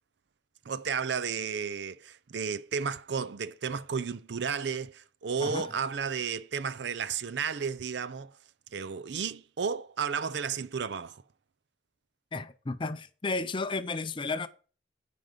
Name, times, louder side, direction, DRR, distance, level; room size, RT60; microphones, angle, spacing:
voice 1, 0.7-8.4 8.7-11.2, right 6 dB, 65° right, 0.5 m, -33 dB
voice 2, 12.3-14.5, left 3 dB, 25° left, 0.5 m, -33 dB
9.3 x 5.2 x 5.1 m
head